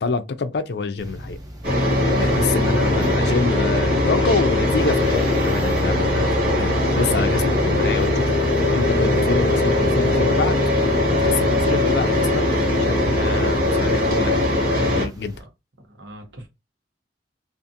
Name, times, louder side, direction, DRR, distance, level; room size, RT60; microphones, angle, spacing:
voice 1, 0.0-1.4 2.1-6.2 6.6-8.3 8.7-10.6 11.1-14.4 14.8-15.3, left 4 dB, 65° left, 0.4 m, -26 dB
sound 1, 1.0-15.4, equal, 20° right, 0.5 m, -38 dB
sound 2, 1.6-15.1, left 1 dB, 55° right, 1.2 m, -20 dB
voice 2, 15.9-16.5, right 1 dB, 85° right, 0.9 m, -41 dB
2.5 x 2.5 x 2.6 m
head